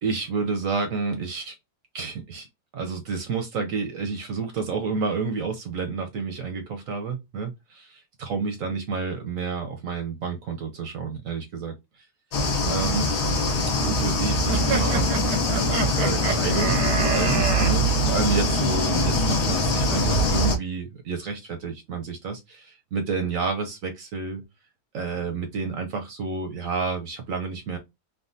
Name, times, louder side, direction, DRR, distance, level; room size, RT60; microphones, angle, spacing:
voice 1, 0.0-1.6 1.9-2.5 2.7-12.0 12.7-13.1 13.8-15.4 16.0-24.4 24.9-27.8, right 4 dB, 65° right, 0.9 m, -30 dB
sound 1, 12.3-20.6, left 1 dB, 75° left, 1.3 m, -23 dB
sound 2, 14.5-17.7, right 5 dB, 90° right, 1.2 m, -28 dB
3.5 x 2.1 x 2.5 m
omnidirectional pair, 1.8 m